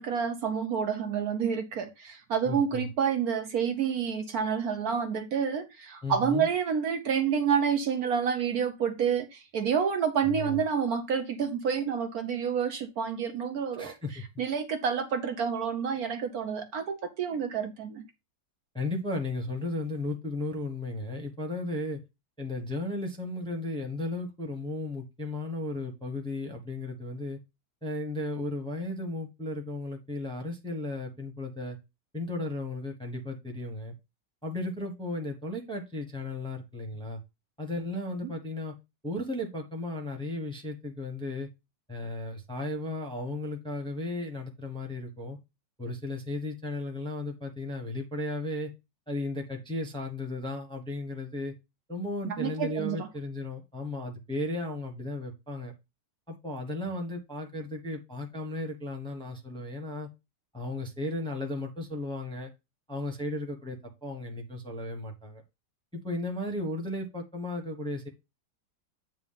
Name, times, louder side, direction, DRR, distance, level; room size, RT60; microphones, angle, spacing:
voice 1, 0.0-13.9 14.4-18.0 52.2-53.0, right 7 dB, 60° right, 1.1 m, -29 dB
voice 2, 2.4-2.9 6.0-6.5 10.3-10.6 13.8-14.4 18.7-22.0 22.4-27.4 27.8-31.8 32.1-33.9 34.4-37.2 37.6-38.7 39.0-41.5 41.9-45.4 45.8-48.7 49.1-51.5 51.9-55.7 56.3-60.1 60.5-62.5 62.9-65.4 65.9-68.1, left 2 dB, 5° left, 0.9 m, -35 dB
8.8 x 3.1 x 5.5 m
omnidirectional pair, 1.9 m